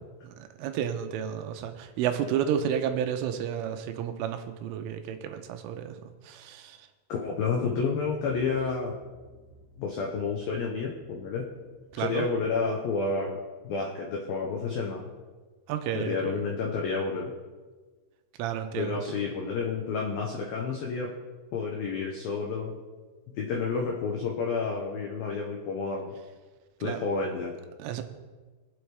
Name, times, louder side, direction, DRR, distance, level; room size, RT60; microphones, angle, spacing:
voice 1, 0.2-6.9 11.9-12.3 15.7-16.4 18.4-19.2 26.8-27.0 27.8-28.0, right 9 dB, 85° right, 7 dB, 3.3 m, -31 dB
voice 2, 7.1-8.9 9.8-11.5 12.0-13.4 13.6-15.0 15.9-17.3 18.8-21.1 21.5-22.8 23.3-26.2 26.8-27.5, left 4 dB, 85° left, 0 dB, 2.0 m, -30 dB
sound 1, 7.8-12.7, equal, 5° left, 1.8 m, -58 dB
24.0 x 8.0 x 3.4 m, 1.4 s
omnidirectional pair, 5.8 m